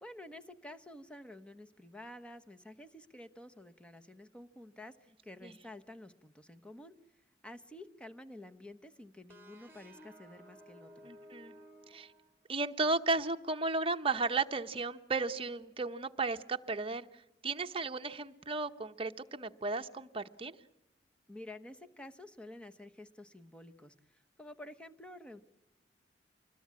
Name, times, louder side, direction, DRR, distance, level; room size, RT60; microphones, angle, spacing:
voice 1, 0.0-5.0 5.2-7.0 7.4-11.1 21.3-25.4, left 1 dB, 5° left, 7 dB, 1.1 m, -50 dB
sound 1, 9.3-12.8, equal, 15° right, 3.7 m, -56 dB
voice 2, 11.0-11.5 11.9-12.1 12.5-17.1 17.4-20.6, right 3 dB, 35° right, 7 dB, 1.0 m, -34 dB
26.0 x 21.5 x 8.5 m, 0.85 s
head